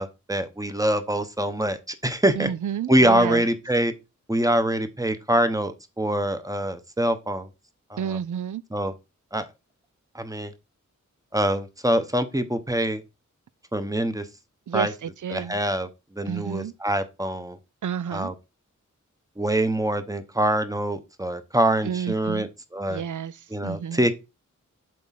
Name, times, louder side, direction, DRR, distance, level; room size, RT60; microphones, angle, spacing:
voice 1, 0.0-2.5 2.9-3.9 4.3-7.5 7.9-8.2 8.7-8.9 9.3-9.5 10.1-10.5 11.3-13.0 13.7-14.3 14.7-14.9 15.3-17.6 18.1-18.3 19.4-23.0 23.5-24.2, right 1 dB, 10° right, 0.9 m, -24 dB
voice 2, 2.4-3.4 8.0-8.6 14.7-15.6 16.3-16.7 17.8-18.3 21.8-22.5 22.9-24.0, right 8 dB, 75° right, 0.5 m, -30 dB
7.7 x 3.7 x 5.8 m
wide cardioid pair, 100°, 31 cm